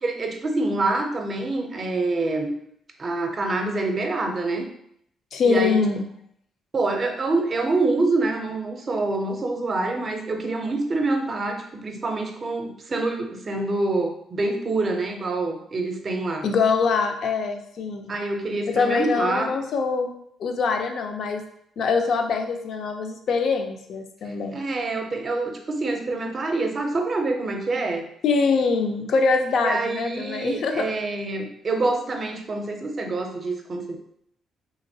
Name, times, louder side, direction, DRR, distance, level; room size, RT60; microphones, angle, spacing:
voice 1, 0.0-2.5 3.0-4.7 5.4-5.8 6.7-16.5 18.1-19.5 24.2-28.1 29.6-34.0, right 2 dB, 40° right, 4 dB, 0.5 m, -26 dB
voice 2, 5.3-6.0 16.4-18.1 18.7-20.1 20.4-21.4 21.8-24.6 28.2-30.9, left 4 dB, 65° left, 5 dB, 0.4 m, -23 dB
2.9 x 2.9 x 2.7 m, 0.71 s
cardioid pair, 90°, 0 cm